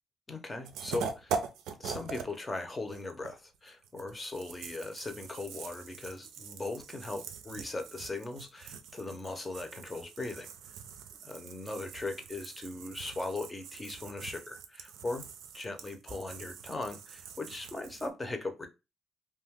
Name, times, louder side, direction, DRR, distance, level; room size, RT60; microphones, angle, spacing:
voice 1, 0.3-1.3 1.8-10.5 11.2-15.2 15.5-18.7, left 2 dB, 25° left, 0.6 m, -39 dB
sound 1, 0.6-2.4 2.6-18.1, right 6 dB, 90° right, 0.4 m, -43 dB
2.5 x 2.3 x 3.4 m
cardioid pair, 80°, 0 cm